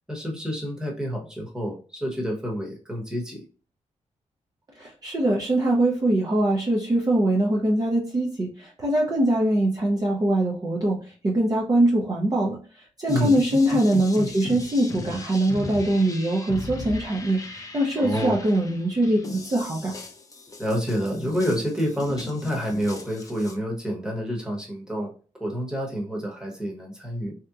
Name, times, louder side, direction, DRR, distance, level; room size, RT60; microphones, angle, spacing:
voice 1, 0.1-3.4 13.1-13.3 18.0-18.4 20.6-25.1 25.4-27.3, equal, 5° right, 0 dB, 1.0 m, -28 dB
voice 2, 4.8-11.0 11.2-19.9, right 1 dB, 30° right, -2 dB, 0.6 m, -23 dB
sound 1, 13.1-23.5, left 3 dB, 25° left, 0.5 m, -37 dB
3.4 x 2.8 x 2.4 m, 0.37 s
wide cardioid pair, 135°, 12 cm